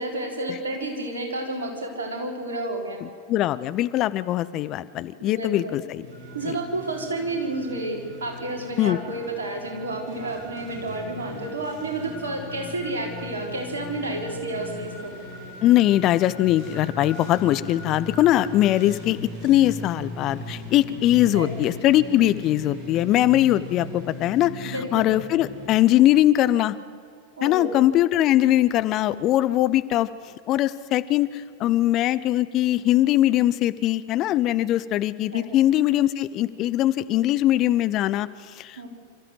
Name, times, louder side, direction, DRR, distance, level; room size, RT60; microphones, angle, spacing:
voice 1, 0.0-3.0 5.2-5.7 6.3-15.1 21.3-21.6 24.6-25.0 27.4-27.7 35.3-35.6 38.8-38.9, right 2 dB, 70° right, 1 dB, 4.0 m, -30 dB
voice 2, 3.0-6.1 6.4-6.5 8.8-9.0 15.6-26.8 27.4-30.1 30.5-38.9, left 14 dB, 35° left, 16 dB, 0.6 m, -21 dB
sound 1, 6.0-25.8, left 2 dB, 35° right, 7.4 m, -38 dB
26.0 x 13.5 x 7.9 m, 2.2 s
figure-of-eight pair, 90°, 0 cm